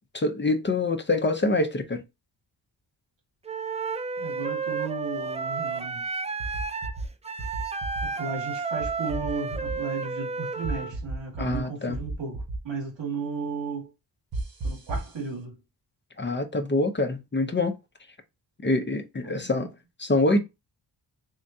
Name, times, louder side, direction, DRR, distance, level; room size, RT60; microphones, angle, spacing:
voice 1, 0.1-2.0 11.4-12.0 16.2-17.7 18.6-19.7 20.0-20.4, left 2 dB, 25° left, 0.6 m, -25 dB
Wind instrument woodwind instrument, 3.5-10.9, right 4 dB, 15° right, 0.3 m, -32 dB
voice 2, 4.2-6.1 8.0-13.9 14.6-15.6 19.2-19.7, right 4 dB, 85° right, 2.0 m, -35 dB
sound 1, 6.4-7.1 7.4-8.0 8.8-9.7 10.6-11.6 11.9-12.6 14.3-15.1, right 2 dB, 55° right, 1.1 m, -32 dB
3.6 x 3.4 x 2.7 m
cardioid pair, 90°, 43 cm